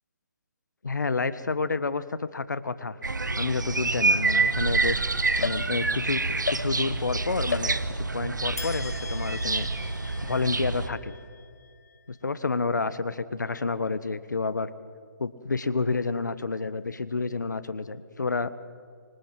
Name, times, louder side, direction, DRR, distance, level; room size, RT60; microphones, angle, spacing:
voice 1, 0.8-3.0 3.4-9.7 10.2-11.2 12.2-14.7 15.2-18.5, left 4 dB, 75° left, 14 dB, 1.4 m, -29 dB
sound 1, 3.0-10.9, right 3 dB, 80° right, 1.5 m, -27 dB
sound 2, 5.4-6.1 6.5-7.1 7.5-8.2 8.6-12.0, left 5 dB, 60° left, 1.2 m, -37 dB
26.0 x 25.0 x 7.8 m, 2.2 s
figure-of-eight pair, 145°, 10 cm